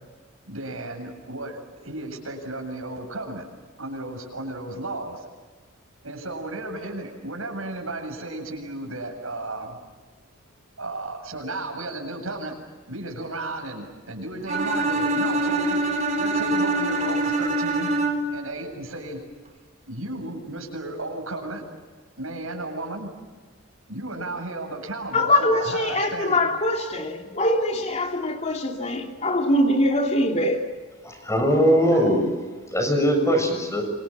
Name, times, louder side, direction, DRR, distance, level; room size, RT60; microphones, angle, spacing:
voice 1, 0.5-3.5 3.8-5.2 6.0-9.8 10.8-12.6 12.9-15.8 16.2-18.0 18.3-19.2 19.9-21.6 22.2-23.1 23.9-26.4 31.7-32.1, right 2 dB, 80° right, 7.8 m, -34 dB
Bowed string instrument, 14.5-18.5, right 2 dB, 35° right, 4.2 m, -24 dB
voice 2, 25.1-30.7, left 1 dB, 30° left, 2.9 m, -23 dB
voice 3, 31.0-32.2 32.7-33.8, equal, 15° left, 7.0 m, -20 dB
28.5 x 25.5 x 7.5 m
head